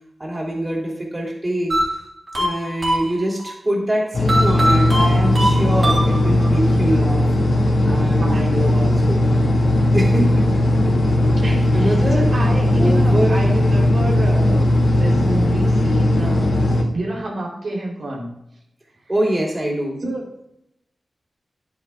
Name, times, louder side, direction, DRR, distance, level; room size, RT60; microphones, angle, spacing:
voice 1, 0.2-1.7 2.4-7.3 7.8-9.2 9.9-10.5 11.7-12.3 12.8-13.4 19.1-20.0, right 1 dB, 25° right, -2 dB, 3.0 m, -24 dB
sound 1, 1.7-3.5 4.3-6.5, equal, 45° right, 4.0 m, -22 dB
sound 2, 4.1-16.8, left 1 dB, 75° left, 2.2 m, -17 dB
voice 2, 8.2-8.9 11.4-16.5 16.9-18.3 20.0-20.3, right 1 dB, 75° right, -3 dB, 3.3 m, -29 dB
10.5 x 10.0 x 2.4 m, 0.81 s
wide cardioid pair, 100°, 0 cm